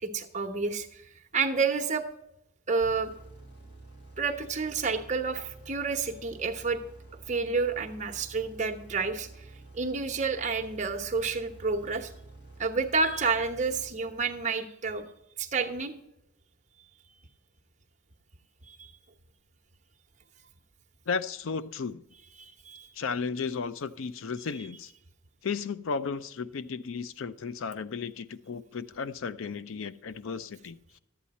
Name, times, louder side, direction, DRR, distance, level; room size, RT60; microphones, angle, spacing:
voice 1, 0.0-1.0 1.3-2.1 2.7-3.1 4.2-6.8 7.3-9.4 9.7-12.1 12.6-15.1 15.4-15.9 18.7-18.9 22.4-22.9, right 4 dB, 35° right, 4 dB, 1.0 m, -29 dB
sound 1, 2.8-14.5, right 2 dB, 50° left, 2.1 m, -50 dB
voice 2, 21.1-22.0 23.0-24.9 25.4-30.8, left 5 dB, 65° left, 15 dB, 0.4 m, -34 dB
11.5 x 8.5 x 4.2 m, 0.83 s
head